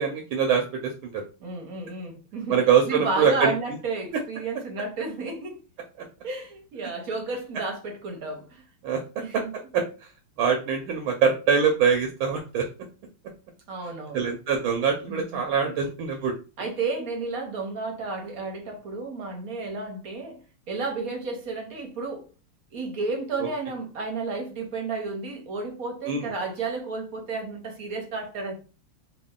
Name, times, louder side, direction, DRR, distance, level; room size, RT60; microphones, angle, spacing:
voice 1, 0.0-1.2 2.5-3.5 8.8-9.0 9.7-10.1 10.4-12.7 14.1-16.3 23.4-23.5 26.1-26.3, right 6 dB, 75° right, 1.4 m, -23 dB
voice 2, 1.4-5.6 6.2-8.6 9.2-9.5 13.7-14.3 15.1-15.4 16.6-20.4 20.7-22.3 22.7-28.6, right 3 dB, 55° right, 1.0 m, -32 dB
3.6 x 2.3 x 3.6 m
omnidirectional pair, 2.4 m